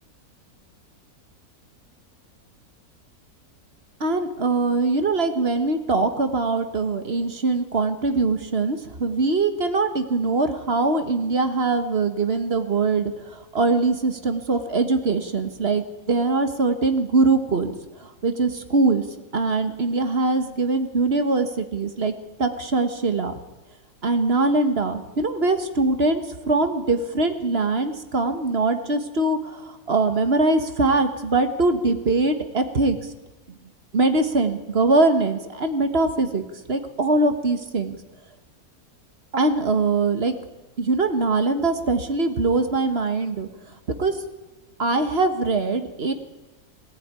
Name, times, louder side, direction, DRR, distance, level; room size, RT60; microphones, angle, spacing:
voice 1, 4.0-17.8 18.2-19.0 19.3-22.1 22.4-23.3 24.0-33.0 33.9-38.0 39.3-40.3 40.8-43.5 44.0-44.1 44.8-46.1, right 3 dB, 40° right, 8 dB, 1.7 m, -22 dB
20.5 x 18.0 x 9.7 m, 1.1 s
omnidirectional pair, 1.6 m